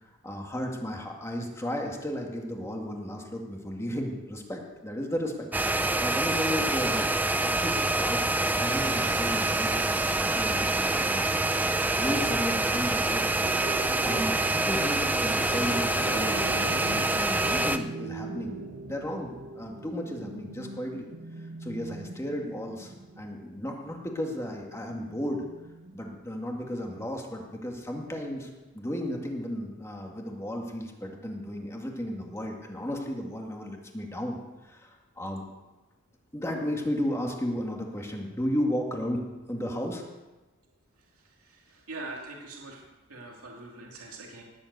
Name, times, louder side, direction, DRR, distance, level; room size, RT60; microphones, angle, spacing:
voice 1, 0.2-21.1 21.6-25.4 25.9-28.5 28.7-34.4 34.6-35.4 36.3-40.0, equal, 15° left, 1 dB, 2.0 m, -34 dB
sound 1, 5.5-17.8, right 2 dB, 10° right, 0.5 m, -26 dB
sound 2, 7.3-14.2, left 1 dB, 80° left, 2.0 m, -47 dB
sound 3, 13.4-27.1 27.4-27.5, right 2 dB, 55° right, 1.5 m, -41 dB
voice 2, 41.5-42.8 43.1-44.4, right 2 dB, 85° right, -1 dB, 2.6 m, -42 dB
19.5 x 8.1 x 8.1 m, 1.1 s
head